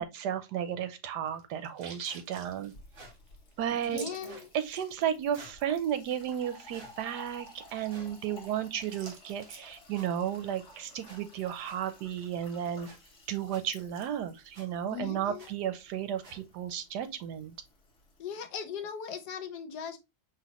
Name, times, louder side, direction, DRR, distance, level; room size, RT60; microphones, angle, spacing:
voice 1, 0.0-2.7 3.6-4.1 4.5-12.9 13.3-17.5, right 9 dB, 85° right, 1.3 m, -33 dB
sound 1, 1.3-5.0 5.3-5.4 5.7-5.8 6.1-9.6, right 5 dB, 60° right, 1.5 m, -49 dB
sound 2, 2.0-2.2 2.9-3.1 4.2-4.5 5.3-5.6 6.7-6.9 7.9-8.1 9.0-9.1 9.9-10.1 11.0-11.2 11.6-11.8 12.8-13.0 13.5-13.6 14.5-14.7 15.4-15.5 16.2-16.4, right 2 dB, 40° right, 1.1 m, -51 dB
Fill (with liquid), 2.4-18.2, left 1 dB, 40° left, 1.4 m, -55 dB
voice 2, 3.9-4.5 14.9-15.5 18.2-20.0, left 7 dB, 80° left, 1.3 m, -39 dB
4.9 x 3.1 x 2.9 m
omnidirectional pair, 1.7 m